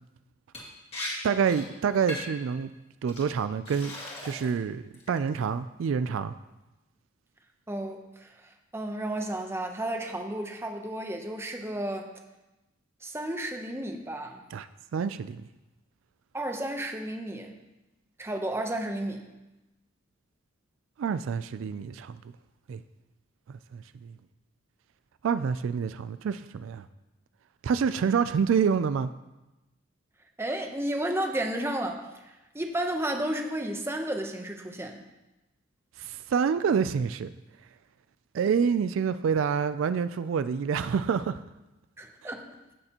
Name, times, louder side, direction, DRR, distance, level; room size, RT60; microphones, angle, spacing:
Liquid, 0.5-0.7 0.9-1.1 1.4-1.7 2.1-2.4 3.1-3.2 3.7-4.6 4.9-5.4, left 1 dB, 30° left, 2.0 m, -38 dB
voice 1, 1.2-2.7 3.0-3.9 4.2-6.3 14.5-15.4 21.0-22.2 22.7-22.8 23.5-24.1 25.2-26.9 27.6-29.1 36.0-37.3 38.3-41.4, right 6 dB, 75° right, 12 dB, 0.3 m, -27 dB
voice 2, 7.7-12.1 13.0-14.4 16.3-17.5 18.2-19.3 30.4-35.0 42.0-42.6, right 1 dB, 10° right, 4 dB, 0.8 m, -32 dB
16.5 x 6.6 x 2.9 m, 1.0 s
head